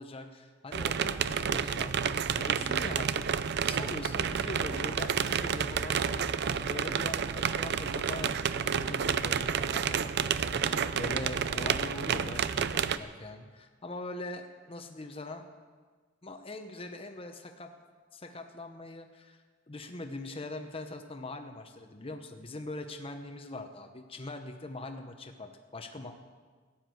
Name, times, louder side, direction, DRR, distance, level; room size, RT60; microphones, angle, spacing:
voice 1, 0.0-2.0 2.2-3.3 3.6-15.5 16.2-17.7 18.1-19.4 19.7-26.1, left 2 dB, 30° left, 5 dB, 0.9 m, -42 dB
sound 1, 0.7-13.0, right 7 dB, 55° right, 0.5 m, -30 dB
15.0 x 10.0 x 7.7 m, 1.5 s
head